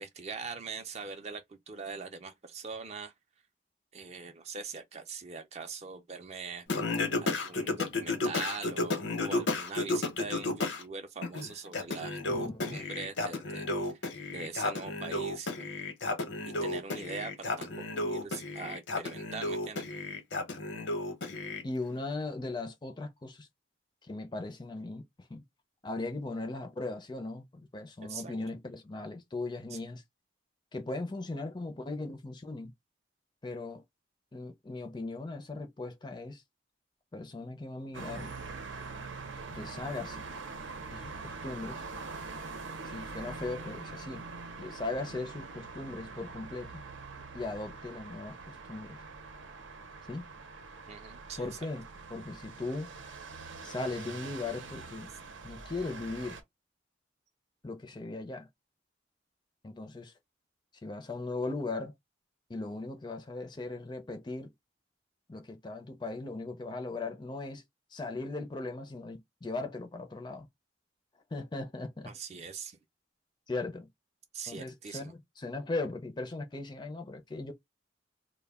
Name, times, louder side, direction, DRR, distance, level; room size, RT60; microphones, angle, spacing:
voice 1, 0.0-3.1 3.9-6.7 7.2-13.9 14.3-15.6 16.6-19.9 28.0-28.3 29.7-29.8 50.9-51.5 72.0-72.8 74.3-75.1, right 5 dB, 35° right, 0.4 m, -42 dB
Singing, 6.7-10.8 11.2-21.6, left 2 dB, 75° left, 0.8 m, -33 dB
voice 2, 12.3-12.8 21.6-23.5 24.0-25.4 25.8-30.0 30.7-32.7 33.4-33.8 34.3-36.4 37.1-38.3 39.5-40.2 40.9-41.8 42.8-44.3 44.6-46.8 47.3-49.0 50.1-50.3 51.4-52.9 53.6-55.1 55.4-56.4 57.6-58.5 59.6-60.1 60.8-61.9 62.5-64.5 65.3-67.6 67.9-70.5 71.3-72.1 73.5-73.9 74.5-77.5, left 2 dB, 25° left, 0.4 m, -38 dB
sound 1, 37.9-56.4, right 4 dB, 90° right, 0.7 m, -44 dB
2.2 x 2.1 x 3.3 m
head